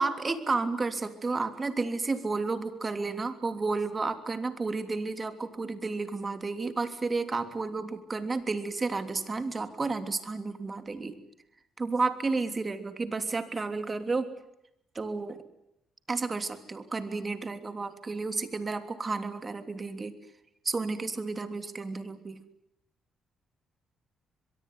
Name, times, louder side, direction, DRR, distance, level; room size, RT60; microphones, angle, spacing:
voice 1, 0.0-11.1 11.8-14.3 14.9-15.4 16.1-20.1 20.6-22.4, right 3 dB, 30° right, 10 dB, 3.1 m, -31 dB
24.0 x 22.5 x 9.6 m, 0.81 s
cardioid pair, 90°, 0 cm